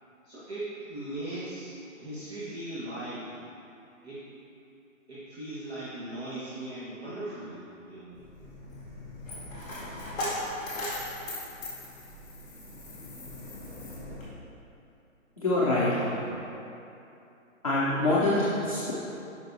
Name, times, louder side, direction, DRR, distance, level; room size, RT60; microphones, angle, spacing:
voice 1, 0.2-3.3 4.0-4.2 5.1-8.2, right 1 dB, 50° right, -10 dB, 1.3 m, -38 dB
Coin (dropping), 8.1-14.2, left 1 dB, 5° left, 1.4 m, -38 dB
voice 2, 15.4-16.3 17.6-18.9, left 2 dB, 30° left, -9 dB, 0.5 m, -25 dB
7.9 x 5.4 x 2.7 m, 2.8 s
hypercardioid pair, 175°, 40 cm